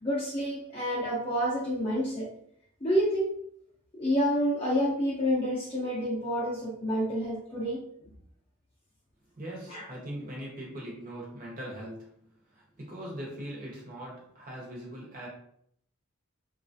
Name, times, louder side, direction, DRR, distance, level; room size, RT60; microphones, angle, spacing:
voice 1, 0.0-2.3 2.8-3.3 3.9-7.8 9.7-9.8, equal, 25° left, -7 dB, 0.5 m, -28 dB
voice 2, 9.3-12.1 12.4-15.3, equal, 35° right, -3 dB, 0.9 m, -41 dB
2.9 x 2.4 x 2.6 m, 0.68 s
head